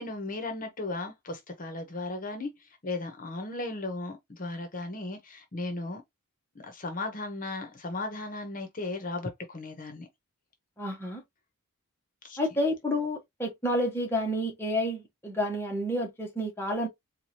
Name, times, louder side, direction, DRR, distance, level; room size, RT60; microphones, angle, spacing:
voice 1, 0.0-2.5 2.8-6.0 6.6-10.1 12.2-12.4, left 2 dB, 40° left, 1.0 m, -36 dB
voice 2, 10.8-11.2 12.4-16.9, left 1 dB, 10° left, 1.0 m, -30 dB
4.7 x 2.4 x 2.9 m
head